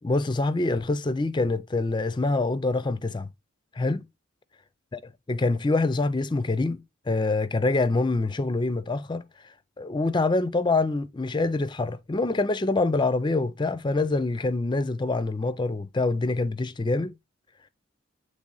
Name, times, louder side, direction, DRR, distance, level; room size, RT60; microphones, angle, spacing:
voice 1, 0.0-3.3 3.8-4.0 4.9-5.0 5.3-9.2 9.8-17.1, left 2 dB, 20° left, 0.4 m, -25 dB
8.6 x 3.3 x 3.9 m
head